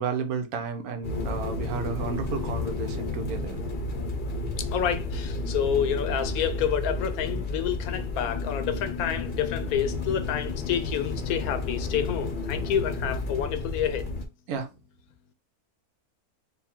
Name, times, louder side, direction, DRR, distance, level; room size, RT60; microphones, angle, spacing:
voice 1, 0.0-3.6 14.5-14.7, right 5 dB, 75° right, 1.2 m, -32 dB
sound 1, 1.0-14.3, left 3 dB, 45° left, 0.7 m, -31 dB
voice 2, 4.6-14.1, left 9 dB, 80° left, 1.1 m, -28 dB
4.1 x 2.3 x 4.2 m
omnidirectional pair, 1.6 m